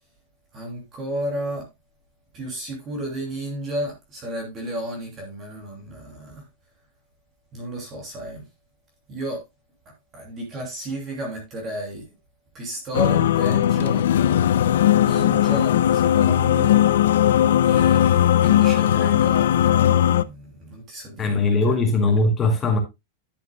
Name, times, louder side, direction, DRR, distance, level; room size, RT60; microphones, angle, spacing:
voice 1, 0.5-1.7 2.3-6.4 7.5-8.4 9.1-9.4 10.1-12.1 12.5-14.1 14.9-16.8 17.6-21.4, right 1 dB, 25° right, 2.8 m, -32 dB
sound 1, 12.9-20.2, left 11 dB, 85° left, 0.5 m, -18 dB
voice 2, 21.2-22.8, left 2 dB, 15° left, 2.4 m, -20 dB
10.5 x 7.7 x 2.3 m
supercardioid pair, 160°, 0 cm